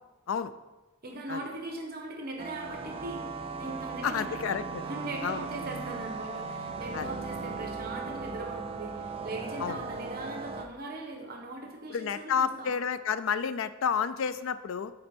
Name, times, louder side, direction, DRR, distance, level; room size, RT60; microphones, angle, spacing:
voice 1, 1.0-3.3 3.6-4.5 4.8-12.7, right 2 dB, 45° right, 1 dB, 1.1 m, -39 dB
sound 1, 2.4-10.7, right 4 dB, 30° right, 0.4 m, -38 dB
voice 2, 4.0-4.8 5.2-5.5 6.9-7.1 9.6-9.8 11.9-14.9, left 7 dB, 70° left, 14 dB, 0.4 m, -30 dB
8.4 x 4.0 x 4.4 m, 1.1 s
head